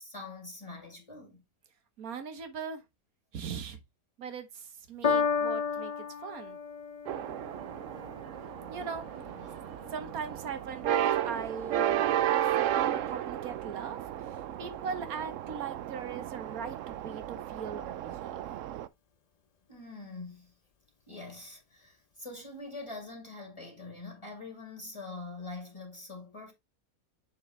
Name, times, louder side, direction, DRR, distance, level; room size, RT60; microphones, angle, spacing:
voice 1, 0.0-1.4 9.1-9.6 19.7-20.5 21.1-26.5, left 3 dB, 20° left, 3.0 m, -44 dB
voice 2, 2.0-2.8 3.3-3.8 4.2-6.6 8.7-9.1 9.9-12.0 12.3-18.4, right 6 dB, 85° right, 1.6 m, -40 dB
Piano, 5.0-11.6 12.4-12.5, left 6 dB, 45° left, 0.5 m, -35 dB
sound 1, 7.1-18.9, right 11 dB, 70° right, 0.9 m, -33 dB
sound 2, 7.8-16.0, left 6 dB, 65° left, 1.4 m, -57 dB
7.6 x 5.4 x 3.2 m
omnidirectional pair, 1.5 m